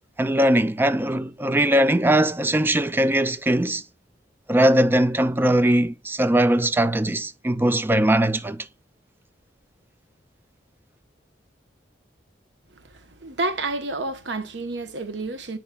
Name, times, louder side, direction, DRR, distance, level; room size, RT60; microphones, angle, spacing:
voice 1, 0.2-3.8 4.5-8.6, right 1 dB, 10° right, 0.4 m, -20 dB
voice 2, 12.9-15.6, right 2 dB, 75° right, 1.0 m, -29 dB
8.6 x 4.7 x 2.3 m
head